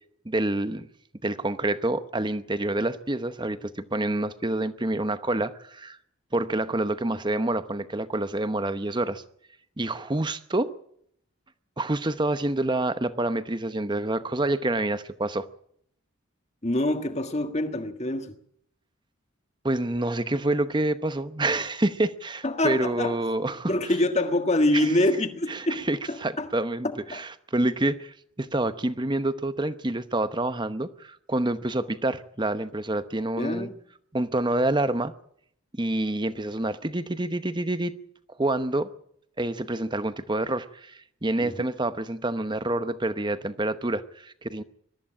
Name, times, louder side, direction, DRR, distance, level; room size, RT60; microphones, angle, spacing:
voice 1, 0.2-0.9 1.2-6.0 6.3-9.2 9.8-10.7 11.8-15.5 19.6-23.7 24.7-24.9 25.5-33.7 34.1-35.1 35.8-37.9 38.4-38.9 39.4-44.6, right 2 dB, 20° right, 0.9 m, -27 dB
voice 2, 16.6-18.3 22.4-23.2 23.7-25.8 26.1-26.5 27.1-27.2 33.4-33.7 41.4-41.6, left 1 dB, 30° left, 1.6 m, -25 dB
22.0 x 14.0 x 8.8 m
head